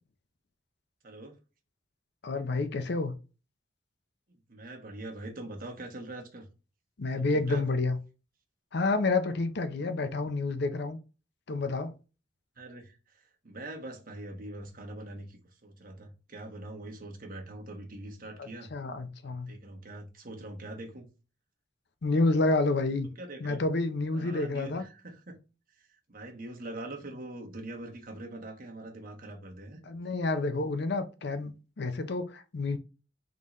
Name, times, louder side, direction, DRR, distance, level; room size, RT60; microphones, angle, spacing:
voice 1, 1.0-1.4 4.3-6.5 7.1-7.6 12.6-18.7 19.2-21.1 23.2-23.6 24.1-25.4 25.7-29.8, right 2 dB, 45° right, 1.1 m, -43 dB
voice 2, 2.2-3.1 7.0-8.0 8.7-11.0 11.5-11.9 18.7-19.5 22.0-23.1 23.4-24.8 29.9-32.8, left 3 dB, 60° left, 0.6 m, -29 dB
3.9 x 3.7 x 3.0 m
head